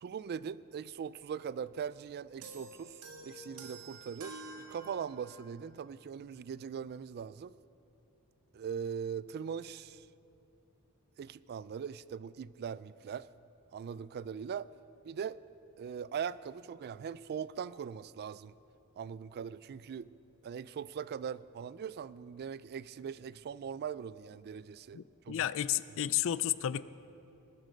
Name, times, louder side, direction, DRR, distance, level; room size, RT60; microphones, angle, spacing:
voice 1, 0.0-7.5 8.5-10.1 11.2-13.3 13.7-14.7 15.0-15.4 15.8-18.6 19.0-20.1 20.4-25.0 25.3-25.4, right 7 dB, 45° right, 19 dB, 0.3 m, -41 dB
sound 1, 2.4-5.6, right 2 dB, 90° right, 1.7 m, -49 dB
voice 2, 24.9-26.8, left 11 dB, 60° left, 17 dB, 0.4 m, -32 dB
20.0 x 13.0 x 5.2 m, 2.9 s
head